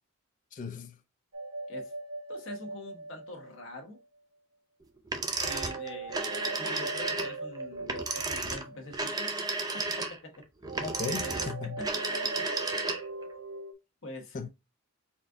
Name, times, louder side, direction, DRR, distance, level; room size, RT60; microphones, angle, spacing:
voice 1, 0.5-1.0 10.8-11.8 14.3-14.5, left 4 dB, 35° left, 0.3 m, -37 dB
sound 1, 1.3-4.0 5.4-9.3 10.7-13.7, right 3 dB, 75° right, 1.0 m, -41 dB
voice 2, 2.3-4.0 5.4-9.3 9.7-10.4 11.0-12.5 14.0-14.4, left 2 dB, 60° left, 1.1 m, -45 dB
sound 2, 5.1-13.2, right 3 dB, 15° right, 0.5 m, -33 dB
4.2 x 2.5 x 3.6 m
head